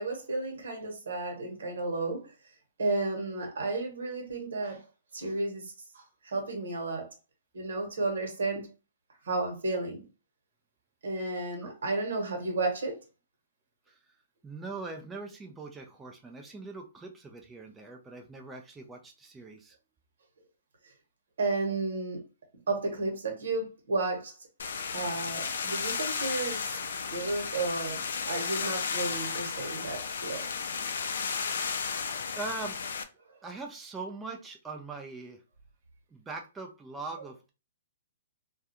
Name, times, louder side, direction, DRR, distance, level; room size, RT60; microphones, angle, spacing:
voice 1, 0.0-2.3 2.8-4.8 5.1-7.1 7.5-8.7 9.2-10.0 11.0-13.0 21.4-22.2 22.7-24.3 24.8-26.8 27.1-30.4, right 3 dB, 80° right, 1.1 m, -32 dB
voice 2, 14.4-19.8 31.6-32.0 32.4-32.8 33.4-35.4 36.1-37.5, right 3 dB, 10° right, 0.4 m, -41 dB
sound 1, 24.6-33.0, left 5 dB, 75° left, 0.4 m, -34 dB
2.3 x 2.3 x 2.7 m
hypercardioid pair, 140°, 0 cm